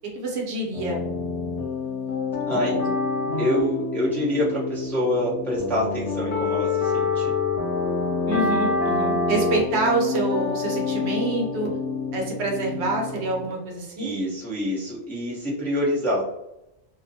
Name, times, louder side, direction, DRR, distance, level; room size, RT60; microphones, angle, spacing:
voice 1, 0.0-1.0 2.5-2.8 3.2-3.4 8.3-11.7 12.1-14.1, right 2 dB, 70° right, -1 dB, 0.9 m, -26 dB
sound 1, 0.7-13.4, left 4 dB, 45° left, 0.5 m, -27 dB
voice 2, 2.5-2.8 3.4-7.3 14.0-16.2, left 1 dB, ahead, -8 dB, 0.7 m, -26 dB
2.5 x 2.1 x 2.6 m, 0.89 s
omnidirectional pair, 1.2 m